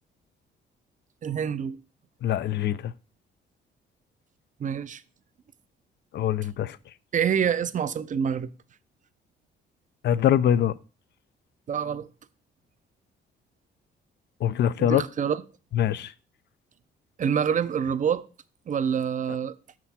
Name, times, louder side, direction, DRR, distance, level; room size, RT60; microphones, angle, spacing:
voice 1, 1.2-1.8 4.6-5.0 7.1-8.5 11.7-12.1 14.8-15.4 17.2-18.2 18.7-19.6, right 7 dB, 40° right, 0.5 m, -26 dB
voice 2, 2.2-2.9 6.1-6.8 10.0-10.7 14.4-15.0 15.7-16.1, left 10 dB, 60° left, 0.4 m, -23 dB
6.1 x 6.0 x 4.2 m
cardioid pair, 90°, 20 cm